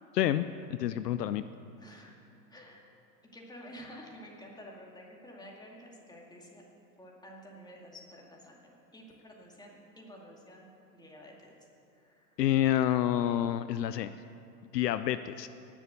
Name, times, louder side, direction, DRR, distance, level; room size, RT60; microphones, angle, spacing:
voice 1, 0.8-1.4 12.4-14.1 14.7-15.5, left 12 dB, 70° left, 13 dB, 0.6 m, -28 dB
voice 2, 1.8-2.1 2.5-2.8 3.3-6.6 7.0-11.5 11.9-12.4, equal, 10° left, -2 dB, 2.3 m, -50 dB
17.5 x 7.1 x 6.8 m, 2.6 s
hypercardioid pair, 100°, 50 cm